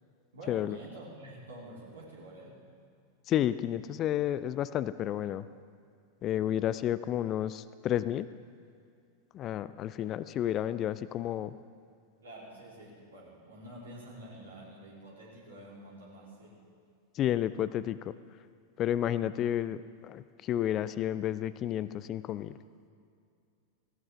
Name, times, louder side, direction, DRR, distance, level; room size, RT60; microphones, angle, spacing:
voice 1, 0.3-2.6 12.2-16.6, right 1 dB, 70° right, -5 dB, 3.6 m, -48 dB
voice 2, 3.3-5.5 6.2-8.3 9.3-11.6 17.1-18.1 18.8-22.6, left 11 dB, 30° left, 15 dB, 0.4 m, -31 dB
18.5 x 16.5 x 3.7 m, 2.4 s
figure-of-eight pair, 90°, 0 cm